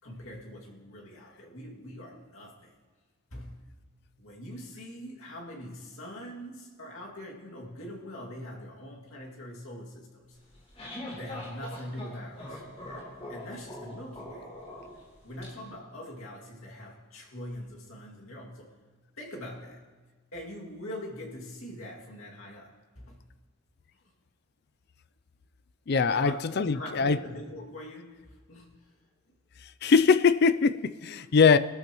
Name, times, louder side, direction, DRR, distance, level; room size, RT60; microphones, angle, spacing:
voice 1, 0.0-2.7 3.3-3.8 4.2-10.4 11.1-12.6 13.3-14.5 15.2-18.8 19.2-19.8 20.3-23.3 26.1-29.0, left 1 dB, 75° left, 2.4 m, -43 dB
sound 1, 10.4-15.5, left 1 dB, 30° left, 3.8 m, -42 dB
voice 2, 25.9-27.2 29.8-31.6, left 5 dB, 50° left, 0.4 m, -22 dB
22.5 x 13.0 x 3.1 m
head